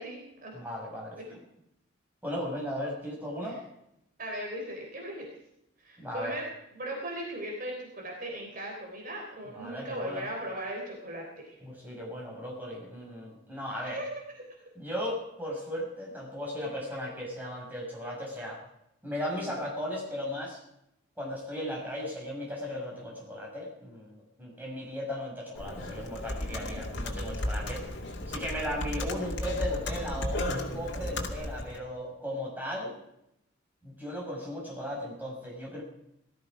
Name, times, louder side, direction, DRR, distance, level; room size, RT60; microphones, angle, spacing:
voice 1, 0.0-0.5 1.1-1.4 3.4-3.6 4.2-5.3 5.8-11.6 13.7-14.4, right 1 dB, 45° right, 0 dB, 3.6 m, -38 dB
voice 2, 0.5-1.4 2.2-3.6 6.0-6.4 9.5-10.2 11.6-14.0 14.7-18.6 19.0-20.6 21.2-27.9 28.3-33.0 33.8-35.8, equal, 10° right, -3 dB, 6.1 m, -36 dB
Computer keyboard, 25.6-31.8, left 1 dB, 60° left, 2.2 m, -34 dB
18.5 x 13.5 x 4.9 m, 0.80 s
head